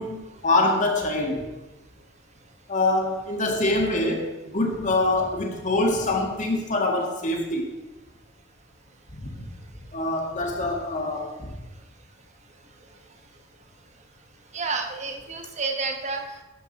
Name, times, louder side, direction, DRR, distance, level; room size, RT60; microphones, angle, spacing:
voice 1, 0.0-1.5 2.7-7.7 9.1-9.3 9.9-11.5, left 2 dB, 40° left, 1 dB, 1.8 m, -25 dB
voice 2, 14.5-16.4, right 4 dB, 35° right, 5 dB, 1.1 m, -30 dB
12.0 x 8.0 x 4.2 m, 1.1 s
head